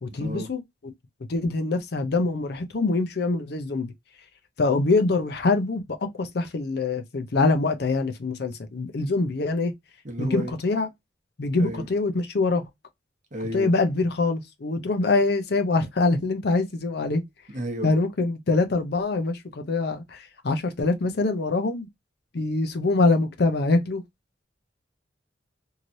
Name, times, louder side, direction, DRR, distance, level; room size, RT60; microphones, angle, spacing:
voice 1, 0.0-0.9 1.3-3.9 4.6-9.7 10.2-10.9 11.4-12.6 13.5-17.2 17.8-21.9 22.3-24.0, left 3 dB, 60° left, 0.6 m, -24 dB
voice 2, 10.0-10.5 11.6-11.9 13.3-13.7 17.5-17.9, equal, 40° right, 0.9 m, -32 dB
3.1 x 2.8 x 2.5 m
head